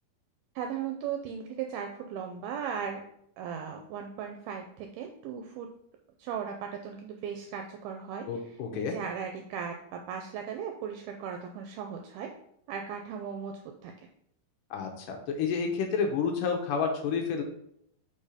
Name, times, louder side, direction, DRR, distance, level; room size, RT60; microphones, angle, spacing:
voice 1, 0.6-3.0 3.4-5.7 6.2-12.3 12.7-13.9, right 7 dB, 80° right, 4 dB, 2.4 m, -37 dB
voice 2, 8.3-8.9 14.7-17.4, left 5 dB, 75° left, 3 dB, 2.0 m, -30 dB
5.6 x 4.3 x 5.0 m, 0.73 s
omnidirectional pair, 4.6 m